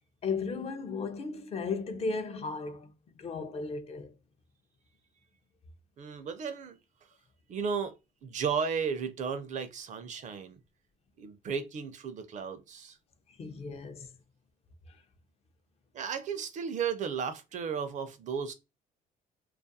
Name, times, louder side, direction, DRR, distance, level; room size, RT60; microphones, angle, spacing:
voice 1, 0.2-4.1 13.3-14.1 14.9-15.0, left 4 dB, 40° left, 0.4 m, -35 dB
voice 2, 6.0-6.8 7.5-7.9 8.2-10.6 11.2-13.0 15.9-18.5, right 6 dB, 45° right, 0.4 m, -34 dB
2.3 x 2.2 x 2.6 m
cardioid pair, 110°, 17 cm